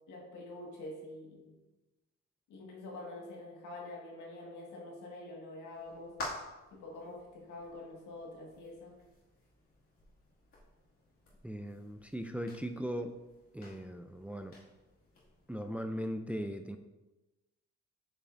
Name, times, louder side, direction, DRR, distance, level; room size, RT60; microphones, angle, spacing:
voice 1, 0.1-1.5 2.5-6.2 6.7-9.0, left 2 dB, 90° left, -1 dB, 1.8 m, -46 dB
sound 1, 5.7-15.8, left 1 dB, 45° left, 2.3 m, -50 dB
voice 2, 11.4-13.1 13.5-14.6 15.5-16.8, equal, 5° right, 6 dB, 0.4 m, -38 dB
8.6 x 5.4 x 2.6 m, 1.1 s
cardioid pair, 90°, 30 cm